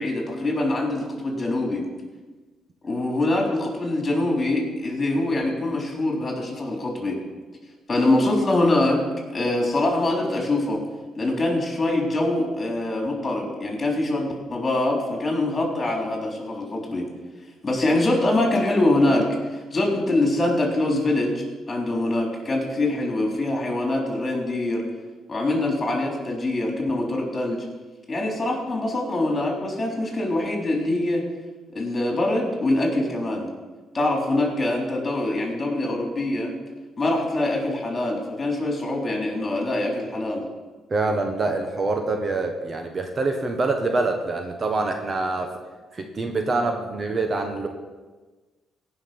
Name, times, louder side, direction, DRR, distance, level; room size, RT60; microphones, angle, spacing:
voice 1, 0.0-1.8 2.8-7.2 7.9-9.0 9.3-10.8 11.2-17.1 17.6-24.8 25.3-27.6 28.1-31.2 31.7-33.5 33.9-36.5 37.0-40.4, left 2 dB, 30° left, 0 dB, 3.7 m, -24 dB
voice 2, 40.9-45.6 45.9-47.7, right 3 dB, 35° right, 4 dB, 1.3 m, -25 dB
17.0 x 5.9 x 6.0 m, 1.3 s
cardioid pair, 90°, 0 cm